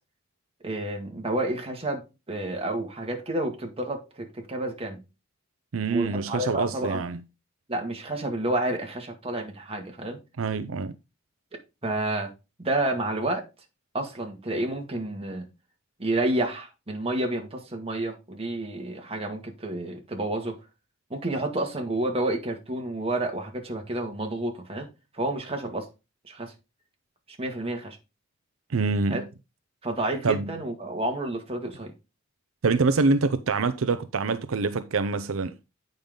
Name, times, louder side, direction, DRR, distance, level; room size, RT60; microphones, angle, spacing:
voice 1, 0.6-5.0 5.9-7.0 7.7-10.2 11.8-12.3 12.6-13.5 13.9-15.5 16.0-20.6 21.1-24.9 25.1-25.9 26.2-26.5 27.4-28.0 29.1-29.2 29.8-31.9, right 1 dB, 30° right, 2.0 m, -30 dB
voice 2, 5.7-7.2 10.4-10.9 28.7-29.2 30.2-30.5 32.6-35.6, right 4 dB, 80° right, 0.6 m, -25 dB
8.8 x 5.3 x 3.8 m
head